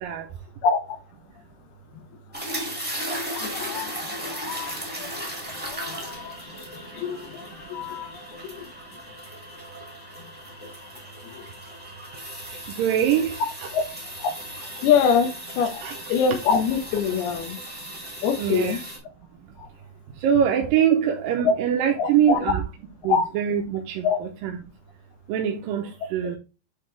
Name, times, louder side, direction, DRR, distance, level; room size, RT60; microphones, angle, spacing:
voice 1, 0.6-1.0 3.2-5.1 5.5-6.5 6.9-8.6 11.3-11.5 13.7-13.9 14.2-14.3 14.8-15.8 16.1-17.6 18.2-18.8 19.6-19.7 21.4-21.6 22.0-22.5 23.1-23.2 24.0-24.2 26.2-26.3, left 6 dB, 80° left, 2.8 m, -25 dB
sound 1, 2.3-19.0, right 1 dB, 15° right, 0.3 m, -36 dB
voice 2, 12.8-13.4 15.8-15.9 18.4-18.8 20.2-22.6 23.0-24.6 25.3-26.4, right 9 dB, 75° right, 2.2 m, -23 dB
9.9 x 3.6 x 3.2 m
omnidirectional pair, 4.6 m